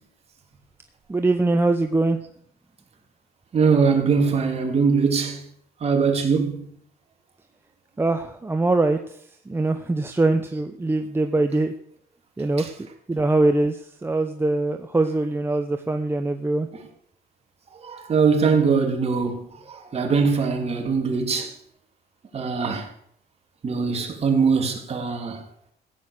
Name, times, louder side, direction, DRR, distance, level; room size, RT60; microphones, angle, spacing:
voice 1, 1.1-2.2 8.0-9.2 9.5-11.7 12.4-12.7 13.1-16.7, right 2 dB, 15° right, 6 dB, 0.9 m, -22 dB
voice 2, 3.5-5.4 5.8-6.7 17.8-19.4 19.7-21.5 22.3-22.9 23.6-25.4, right 5 dB, 35° right, 3 dB, 3.2 m, -21 dB
16.0 x 9.3 x 6.6 m, 0.67 s
cardioid pair, 110°, 17 cm